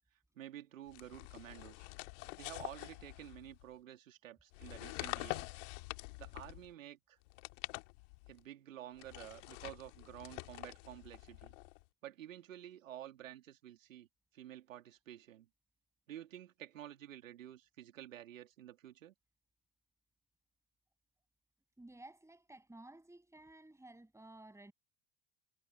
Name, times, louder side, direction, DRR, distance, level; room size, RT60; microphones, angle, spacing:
voice 1, 0.3-1.9 2.4-5.6 6.2-7.2 8.3-11.5 12.0-14.1 14.3-15.5 16.1-19.1, right 12 dB, 80° right, 3.1 m, -51 dB
sound 1, 0.9-3.7 4.5-6.7 7.3-8.4 9.0-11.8, left 26 dB, 65° left, 2.0 m, -46 dB
voice 2, 21.8-24.7, right 2 dB, 5° right, 7.5 m, -55 dB
hypercardioid pair, 75°, 39 cm